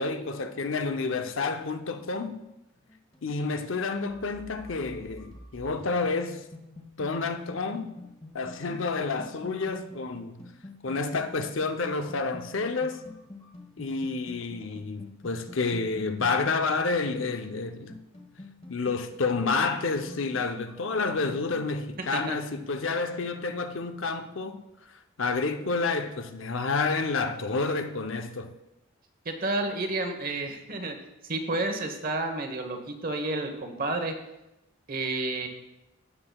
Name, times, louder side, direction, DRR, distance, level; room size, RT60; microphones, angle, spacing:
voice 1, 0.0-2.4 3.2-6.4 7.0-7.9 8.3-10.5 10.8-13.0 13.8-18.0 18.7-24.6 24.9-28.5, left 4 dB, 70° left, 0.7 m, -29 dB
sound 1, 2.8-21.7, left 2 dB, 30° left, 1.5 m, -47 dB
voice 2, 29.2-31.0 31.2-34.1 34.9-35.5, right 2 dB, 45° right, 1.1 m, -30 dB
16.0 x 7.8 x 2.3 m
head